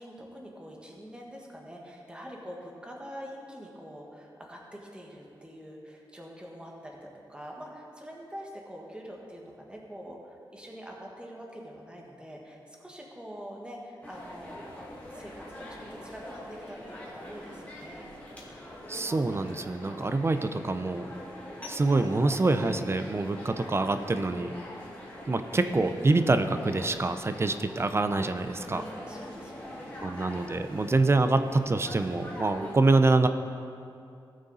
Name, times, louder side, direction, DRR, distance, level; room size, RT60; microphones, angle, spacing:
voice 1, 0.0-18.1 28.7-30.1, equal, 10° right, -1 dB, 1.6 m, -45 dB
sound 1, 14.0-32.8, left 1 dB, 15° left, 2.2 m, -43 dB
voice 2, 18.9-21.1 21.7-24.5 25.3-28.8 30.0-33.3, right 3 dB, 30° right, 9 dB, 0.5 m, -26 dB
17.5 x 6.3 x 4.1 m, 2.5 s
wide cardioid pair, 110°, 9 cm